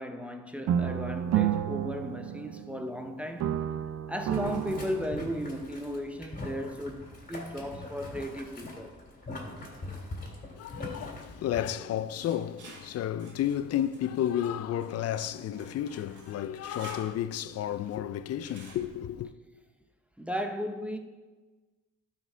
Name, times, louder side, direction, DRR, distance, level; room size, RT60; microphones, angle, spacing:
voice 1, 0.0-3.6 4.1-9.0 20.2-21.0, equal, 5° right, 0.6 m, -35 dB
sound 1, 0.7-3.0 3.4-5.7, right 10 dB, 65° right, 0.5 m, -31 dB
Boiling, 4.3-11.6, left 2 dB, 30° left, 2.2 m, -42 dB
voice 2, 10.6-19.3, left 11 dB, 55° left, 0.4 m, -32 dB
sound 2, 11.6-17.1 18.4-18.8, right 3 dB, 85° right, 1.9 m, -52 dB
12.5 x 4.6 x 3.4 m
cardioid pair, 90°, 30 cm